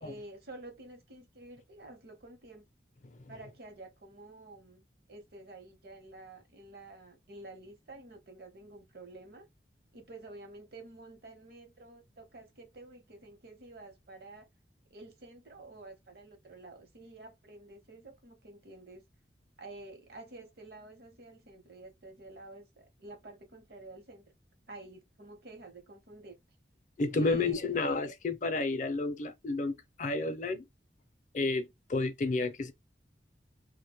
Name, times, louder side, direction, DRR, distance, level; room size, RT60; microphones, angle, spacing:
voice 1, 0.0-2.6 3.3-4.8 5.1-9.5 9.9-14.5 14.9-19.0 19.6-24.3 24.7-26.4 27.1-27.7, right 2 dB, 60° right, 0.8 m, -50 dB
voice 2, 27.0-30.6 31.3-32.7, left 3 dB, 45° left, 0.4 m, -31 dB
2.4 x 2.1 x 2.9 m
head